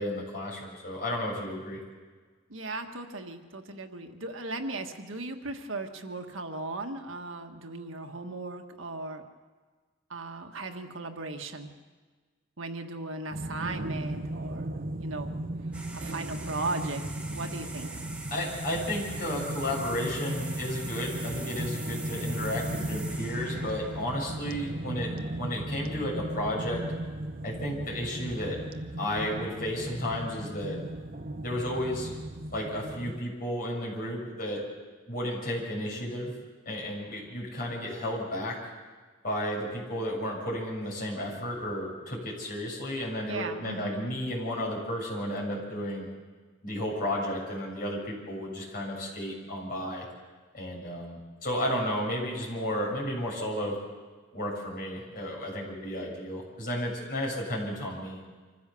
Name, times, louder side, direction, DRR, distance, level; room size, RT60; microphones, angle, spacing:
voice 1, 0.0-1.8 18.3-25.1 25.4-26.8 27.4-28.6 29.0-30.8 31.4-32.1 32.5-34.6 35.1-36.3 36.6-38.6 39.2-46.1 46.6-50.1 50.5-53.8 54.3-58.2, equal, 45° left, -3 dB, 7.0 m, -33 dB
voice 2, 2.5-9.2 10.1-11.7 12.6-14.7 15.0-15.3 15.9-17.9 43.3-44.1, right 2 dB, 90° right, 5 dB, 1.6 m, -37 dB
sound 1, 13.3-33.2, right 1 dB, 45° right, 0.8 m, -36 dB
sound 2, 15.7-24.9, right 2 dB, 5° right, 1.5 m, -43 dB
25.5 x 15.5 x 7.0 m, 1.4 s
head